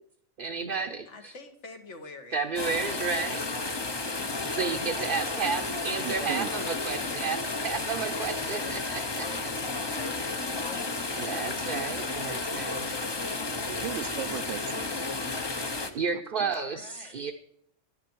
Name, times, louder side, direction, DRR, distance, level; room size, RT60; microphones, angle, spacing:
voice 1, 0.4-1.3 2.3-3.4 4.4-9.3 11.2-12.9 13.7-13.8 15.9-17.3, right 5 dB, 50° right, 0.9 m, -32 dB
voice 2, 1.1-2.4 2.8-4.6 7.3-7.5 8.2-8.6 9.7-11.4 16.5-17.2, left 3 dB, 65° left, 1.7 m, -47 dB
sound 1, 2.3-10.7, left 3 dB, 85° left, 1.8 m, -50 dB
sound 2, 2.6-15.9, left 3 dB, 25° left, 0.7 m, -32 dB
voice 3, 6.0-6.5 13.8-14.9 16.1-16.5, right 12 dB, 75° right, 0.9 m, -37 dB
10.5 x 10.0 x 4.6 m
omnidirectional pair, 1.3 m